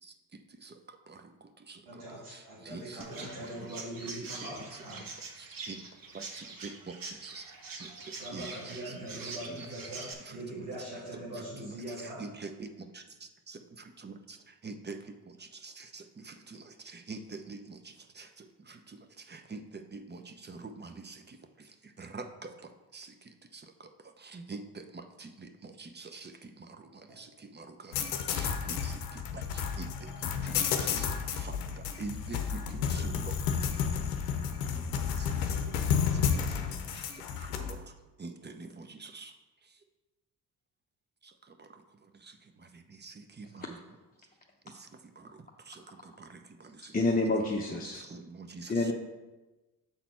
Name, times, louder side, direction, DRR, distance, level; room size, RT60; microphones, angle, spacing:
voice 1, 0.0-2.0 2.3-3.0 3.6-3.7 5.4-5.8 6.1-7.5 7.8-9.6 10.3-10.7 11.3-33.4 34.5-35.3 36.1-37.9 38.2-39.3 39.6-39.7 41.2-43.8 44.6-44.9 45.2-47.0 47.7-48.9, right 3 dB, 25° right, 7 dB, 0.7 m, -47 dB
voice 2, 1.9-5.0 8.2-12.2 30.9-31.0, right 1 dB, 90° right, -8 dB, 2.2 m, -42 dB
Chirp tweet, 3.0-10.1, right 4 dB, 50° right, 1.1 m, -44 dB
sound 1, 27.9-37.7, left 7 dB, 85° left, 0.7 m, -31 dB
voice 3, 46.9-48.0 48.7-48.9, left 2 dB, 20° left, -1 dB, 0.8 m, -28 dB
7.1 x 4.1 x 4.4 m, 1.1 s
hypercardioid pair, 50°, 45 cm